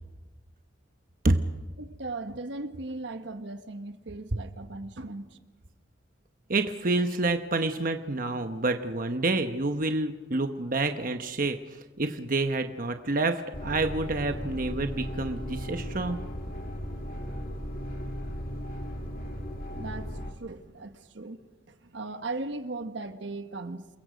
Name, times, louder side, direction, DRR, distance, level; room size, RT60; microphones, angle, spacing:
voice 1, 1.8-5.4 19.8-23.9, right 2 dB, 65° right, 1.3 m, -38 dB
voice 2, 6.5-11.6 12.0-16.2, right 2 dB, 45° right, 1.0 m, -28 dB
sound 1, 13.5-20.3, equal, 50° left, 2.5 m, -36 dB
28.5 x 22.5 x 5.1 m
head